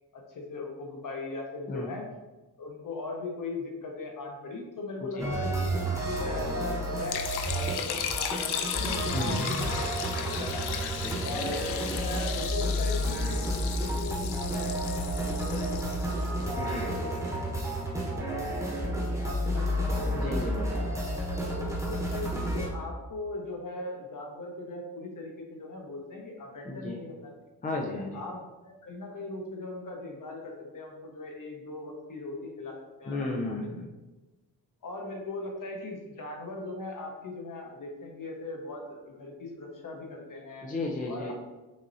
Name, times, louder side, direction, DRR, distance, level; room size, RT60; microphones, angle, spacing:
voice 1, 0.1-2.1 2.6-7.2 7.5-9.7 10.2-10.8 11.2-14.8 15.2-18.2 18.4-20.8 21.4-27.3 28.1-33.6 34.8-40.7 41.1-41.3, left 2 dB, 50° left, 1 dB, 1.1 m, -39 dB
sound 1, 5.2-22.7, equal, 5° right, 1.1 m, -31 dB
Liquid, 7.0-17.2, left 8 dB, 70° left, 0.5 m, -36 dB
voice 2, 11.0-11.4 16.5-16.9 20.1-20.9 26.6-27.0 27.6-28.2 33.0-33.9 40.6-41.3, left 2 dB, 20° left, -1 dB, 0.5 m, -34 dB
6.2 x 2.9 x 2.7 m, 1.1 s
cardioid pair, 85°, 41 cm